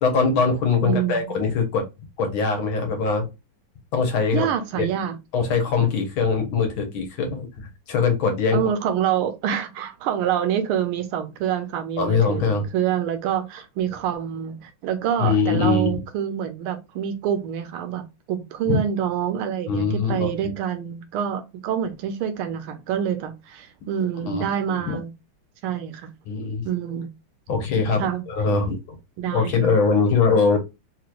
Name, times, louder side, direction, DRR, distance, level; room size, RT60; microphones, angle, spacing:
voice 1, 0.0-1.8 2.2-3.3 3.9-4.5 4.8-4.9 5.3-8.6 12.0-12.7 15.2-15.9 18.7-18.8 19.7-20.5 24.3-24.4 24.9-25.0 26.3-26.7 27.5-28.0 28.3-28.8 29.3-30.6, left 5 dB, 70° left, 1.8 m, -22 dB
voice 2, 0.8-1.3 4.3-5.2 8.5-25.1 25.6-26.1 26.6-27.1 28.0-28.2 29.2-29.6, right 9 dB, 80° right, 1.5 m, -26 dB
4.0 x 3.1 x 2.4 m
omnidirectional pair, 2.4 m